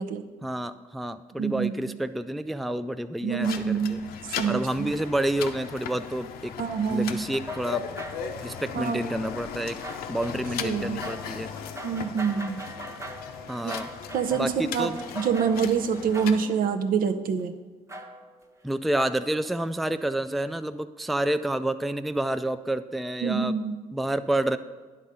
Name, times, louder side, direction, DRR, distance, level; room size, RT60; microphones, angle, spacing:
voice 1, 0.4-4.0 4.5-6.5 6.9-7.8 8.4-9.8 10.1-11.5 13.5-13.9 14.3-15.0 18.6-23.6 23.9-24.6, right 1 dB, ahead, 11 dB, 0.3 m, -29 dB
voice 2, 1.4-1.7 3.2-4.1 4.4-4.7 6.6-7.2 8.7-9.1 10.6-11.0 11.8-12.6 13.6-13.7 14.1-14.9 15.2-17.5 23.2-23.8, right 6 dB, 65° right, 8 dB, 0.6 m, -26 dB
sound 1, 3.4-16.4, left 7 dB, 75° left, 0.6 m, -38 dB
sound 2, 7.4-17.4 17.9-18.4 18.9-19.8, equal, 20° right, 1.1 m, -42 dB
9.9 x 3.8 x 5.4 m, 1.4 s
supercardioid pair, 60°, 16 cm